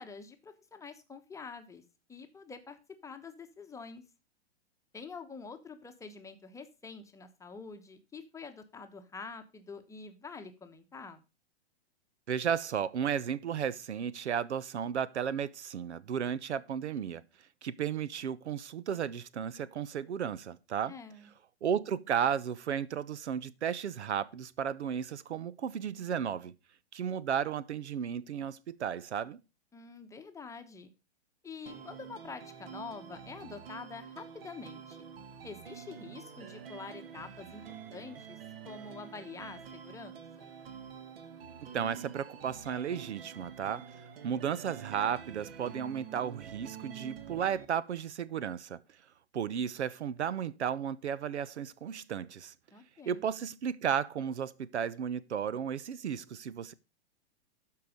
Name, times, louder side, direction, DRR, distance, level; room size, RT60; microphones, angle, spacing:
voice 1, 0.0-1.8 2.1-2.8 3.0-4.0 4.9-11.2 20.9-21.3 29.7-30.9 31.4-35.0 35.4-37.6 37.9-38.4 38.6-40.5 52.7-53.2, left 4 dB, 10° left, 1.0 m, -46 dB
voice 2, 12.3-17.2 17.6-20.9 21.6-26.5 26.9-29.4 41.7-43.9 44.2-48.8 49.3-52.5 53.1-56.7, right 8 dB, 80° right, 0.7 m, -34 dB
sound 1, 31.7-47.7, right 7 dB, 60° right, 1.4 m, -47 dB
12.5 x 4.8 x 5.1 m
hypercardioid pair, 125°, 33 cm